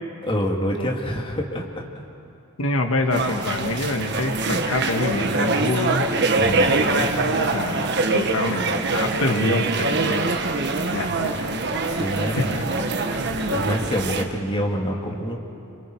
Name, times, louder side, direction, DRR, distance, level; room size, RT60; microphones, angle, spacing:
voice 1, 0.2-2.0 6.4-6.8 12.0-12.6 13.5-15.4, equal, 25° left, 0 dB, 2.3 m, -26 dB
voice 2, 2.6-6.1 6.4-10.4 10.9-11.5 11.8-12.0 12.4-12.5 13.1-13.2 13.5-13.7 14.9-15.0, left 2 dB, 85° left, 4 dB, 1.6 m, -26 dB
sound 1, 3.1-14.2, right 3 dB, 55° right, 1.4 m, -24 dB
28.5 x 27.5 x 4.7 m, 2.7 s
head